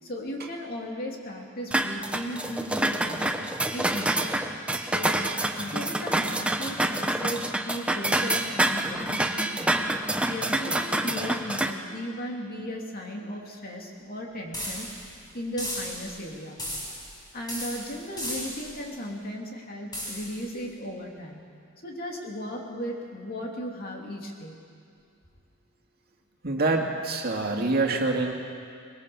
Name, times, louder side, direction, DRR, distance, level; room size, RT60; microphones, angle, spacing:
voice 1, 0.0-3.3 3.7-4.3 4.8-9.8 10.3-14.9 15.3-16.6 17.3-21.4 21.8-24.6, equal, 45° left, 0 dB, 3.0 m, -36 dB
sound 1, 1.7-11.7, right 1 dB, 5° right, 0.9 m, -27 dB
sound 2, 14.5-15.1 15.6-16.2 16.6-17.2 17.5-18.8 19.9-20.4, equal, 20° left, 6.6 m, -35 dB
voice 2, 26.4-28.3, right 3 dB, 50° right, 1 dB, 2.2 m, -25 dB
23.5 x 21.0 x 7.1 m, 2.3 s
head